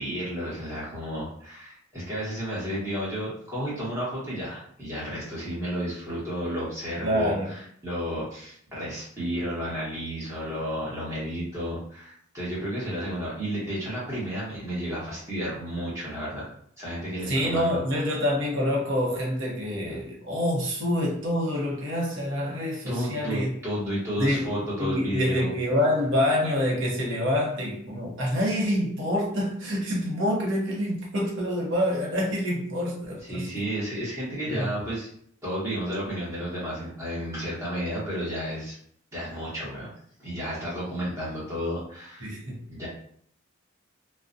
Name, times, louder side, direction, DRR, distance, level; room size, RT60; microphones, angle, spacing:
voice 1, 0.0-16.5 16.8-18.0 22.9-25.5 33.2-35.1 35.4-38.8 39.1-39.9 40.2-42.3 42.7-42.9, equal, 15° right, -8 dB, 1.0 m, -32 dB
voice 2, 7.0-7.5 17.3-23.5 24.2-24.5 24.8-33.6 34.5-34.7 42.2-42.7, left 1 dB, 60° right, -2 dB, 0.8 m, -26 dB
2.3 x 2.1 x 2.5 m, 0.64 s
head